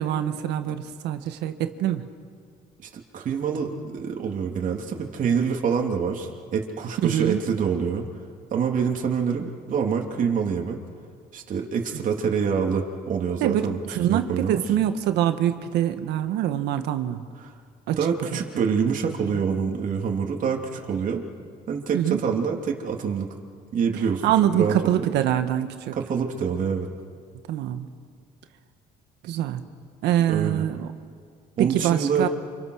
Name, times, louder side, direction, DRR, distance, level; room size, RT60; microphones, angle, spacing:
voice 1, 0.0-2.1 7.0-7.4 11.9-12.1 13.4-13.6 13.9-17.3 17.9-18.0 21.9-22.2 24.2-25.9 27.5-27.9 29.2-29.6 30.0-30.9 31.6-32.3, right 11 dB, 85° right, 8 dB, 1.6 m, -24 dB
voice 2, 2.8-8.1 8.5-10.8 11.3-13.8 14.1-14.6 17.4-17.5 18.0-21.2 21.7-23.3 23.7-24.2 24.5-25.1 25.9-26.9 30.3-30.7 31.6-32.3, right 6 dB, 50° right, 1 dB, 3.0 m, -26 dB
29.0 x 27.5 x 6.5 m, 2.1 s
cardioid pair, 110°, 17 cm